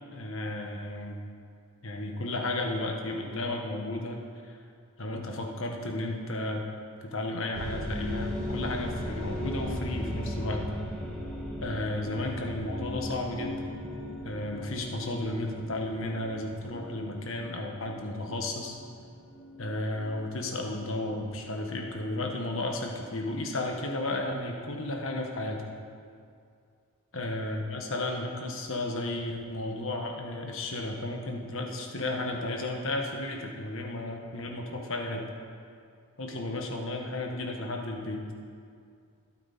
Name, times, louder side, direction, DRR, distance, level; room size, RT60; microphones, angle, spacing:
voice 1, 0.1-1.2 1.8-4.6 5.0-6.6 7.0-10.6 11.6-13.7 14.2-18.7 19.6-25.7 27.1-35.2 36.2-38.2, left 2 dB, 60° left, 1 dB, 1.6 m, -33 dB
sound 1, 7.5-21.6, equal, 5° left, 2.3 m, -38 dB
21.5 x 8.9 x 4.4 m, 2.3 s
head